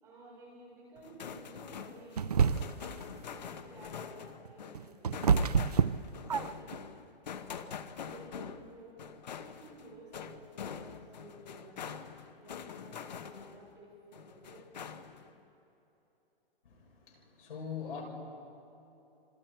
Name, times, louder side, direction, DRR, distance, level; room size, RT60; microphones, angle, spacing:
voice 1, 0.0-2.4 2.9-5.4 6.2-6.8 7.3-9.0 9.3-12.0 12.4-15.0, right 2 dB, 10° right, -6 dB, 4.4 m, -54 dB
sound 1, 1.0-13.7 14.1-15.3, left 7 dB, 45° left, 1.0 m, -45 dB
sound 2, 2.2-2.9 4.5-6.8, right 6 dB, 40° right, 0.4 m, -27 dB
voice 2, 16.6-18.0, left 7 dB, 60° left, -1 dB, 6.2 m, -42 dB
27.0 x 26.0 x 4.6 m, 3.0 s
hypercardioid pair, 180°, 30 cm